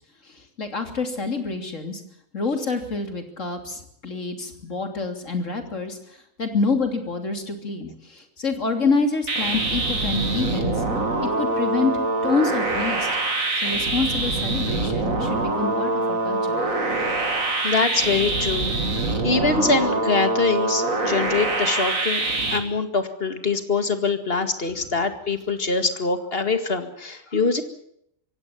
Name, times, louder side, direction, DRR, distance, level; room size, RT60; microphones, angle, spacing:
voice 1, 0.2-2.0 2.3-6.0 6.4-10.8 11.2-11.9 12.2-13.1 13.6-16.6, left 4 dB, 70° left, 6 dB, 3.4 m, -27 dB
sound 1, 9.3-22.6, right 2 dB, 80° right, 3.3 m, -24 dB
voice 2, 17.6-22.2 22.5-27.6, left 4 dB, 45° left, 9 dB, 2.2 m, -24 dB
24.5 x 16.5 x 7.2 m, 0.71 s
omnidirectional pair, 1.4 m